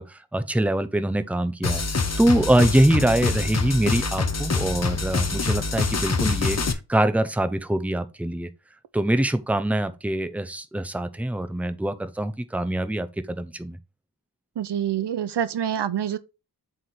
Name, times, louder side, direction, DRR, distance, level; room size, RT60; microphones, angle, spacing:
voice 1, 0.0-8.5 8.9-13.8, right 1 dB, 5° right, 0.6 m, -24 dB
sound 1, 1.6-6.7, left 3 dB, 40° left, 0.9 m, -25 dB
voice 2, 14.6-16.2, right 9 dB, 80° right, 0.6 m, -26 dB
7.7 x 3.4 x 4.2 m
wide cardioid pair, 100°, 41 cm